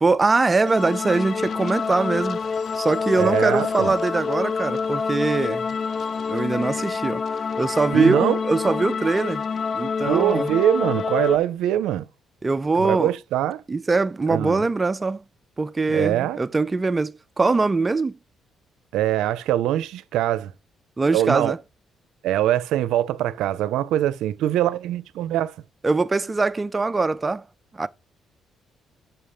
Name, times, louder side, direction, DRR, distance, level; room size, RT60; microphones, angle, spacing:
voice 1, 0.0-2.4 2.8-5.7 6.3-7.2 7.6-9.4 9.7-10.5 12.4-13.1 13.7-15.2 15.6-18.2 21.0-21.6 25.8-27.4 27.7-27.9, right 3 dB, 25° right, 0.5 m, -22 dB
sound 1, 0.7-11.4, left 5 dB, 55° left, 0.4 m, -27 dB
voice 2, 3.2-3.9 7.9-8.4 10.0-12.1 12.8-13.6 14.3-14.6 15.9-16.4 18.9-20.5 21.1-21.6 22.2-25.5, right 12 dB, 90° right, 0.5 m, -23 dB
5.7 x 5.6 x 4.9 m
cardioid pair, 90°, 0 cm